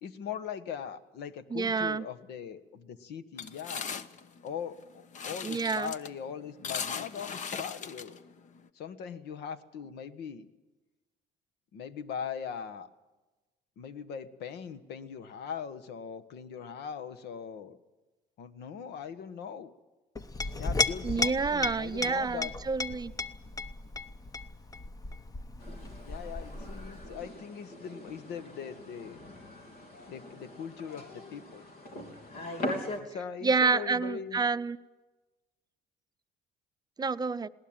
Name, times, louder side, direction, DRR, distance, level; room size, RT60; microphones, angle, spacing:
voice 1, 0.0-3.9 4.4-8.2 8.7-10.5 11.7-12.9 13.8-17.8 18.4-19.7 20.6-22.5 26.0-29.2 30.1-31.7 32.7-34.4, left 7 dB, 80° left, 12 dB, 1.4 m, -40 dB
voice 2, 1.5-2.0 5.4-5.9 21.0-23.1 33.4-34.8 37.0-37.5, right 4 dB, 25° right, 13 dB, 0.6 m, -28 dB
sound 1, 3.4-8.7, left 6 dB, 45° left, 1.0 m, -39 dB
Chink clink, 20.2-27.3, left 3 dB, 20° left, 0.9 m, -35 dB
sound 2, 25.6-33.0, left 1 dB, 65° left, 3.3 m, -41 dB
20.0 x 18.5 x 8.9 m, 1.1 s
cardioid pair, 110°, 17 cm